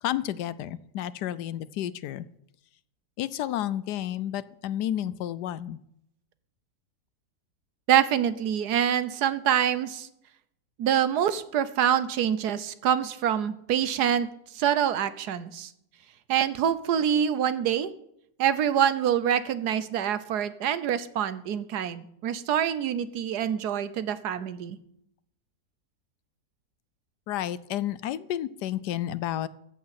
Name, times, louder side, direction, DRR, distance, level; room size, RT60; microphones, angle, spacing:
voice 1, 0.0-2.3 3.2-5.8 27.3-29.5, left 12 dB, 85° left, 17 dB, 1.2 m, -31 dB
voice 2, 7.9-10.1 10.8-14.3 14.5-15.7 16.3-17.9 18.4-24.8, right 9 dB, 80° right, 14 dB, 1.4 m, -25 dB
14.0 x 8.6 x 5.8 m, 0.75 s
omnidirectional pair, 1.7 m